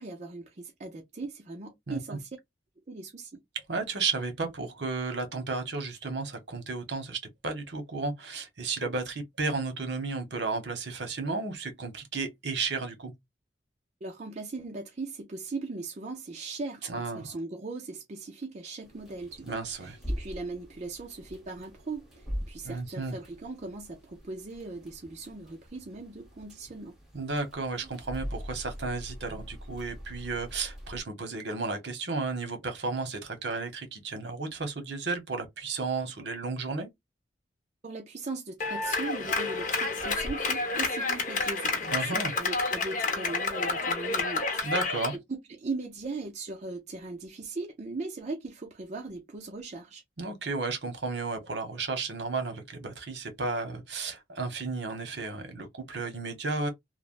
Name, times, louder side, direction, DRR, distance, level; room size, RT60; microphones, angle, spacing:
voice 1, 0.0-2.3 2.9-3.4 14.0-26.9 37.8-44.6 45.1-50.0, right 3 dB, 40° right, 0.5 m, -39 dB
voice 2, 1.9-2.2 3.5-13.1 16.8-17.3 19.5-20.0 22.6-23.1 27.1-36.9 41.8-42.3 44.6-45.1 50.2-56.7, right 3 dB, 65° right, 1.0 m, -33 dB
sound 1, 18.8-31.0, equal, ahead, 1.1 m, -42 dB
Clapping, 38.6-45.2, left 4 dB, 45° left, 0.8 m, -30 dB
3.3 x 2.0 x 2.4 m
head